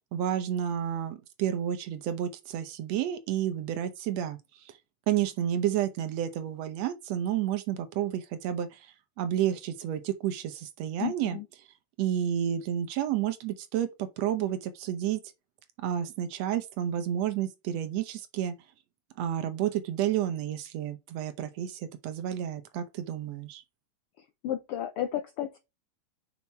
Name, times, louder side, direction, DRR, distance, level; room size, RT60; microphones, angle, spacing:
voice 1, 0.1-4.7 5.1-11.4 12.0-15.2 15.8-18.5 19.2-23.6, right 10 dB, 70° right, 1.8 m, -30 dB
voice 2, 11.0-11.4 24.2-25.6, left 11 dB, 80° left, 1.3 m, -33 dB
5.8 x 5.8 x 4.4 m
omnidirectional pair, 3.4 m